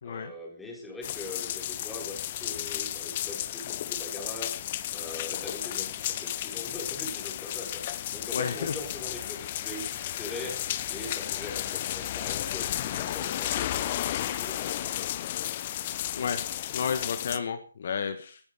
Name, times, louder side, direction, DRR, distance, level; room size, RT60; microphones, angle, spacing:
voice 1, 0.0-4.6 4.9-15.1, left 2 dB, 5° left, 0 dB, 4.3 m, -42 dB
sound 1, 1.0-17.4, left 12 dB, 35° left, 0.9 m, -33 dB
voice 2, 8.3-8.7 16.1-16.4 16.7-18.4, left 6 dB, 50° left, 9 dB, 1.5 m, -31 dB
18.0 x 9.5 x 5.2 m, 0.41 s
figure-of-eight pair, 150°, 0 cm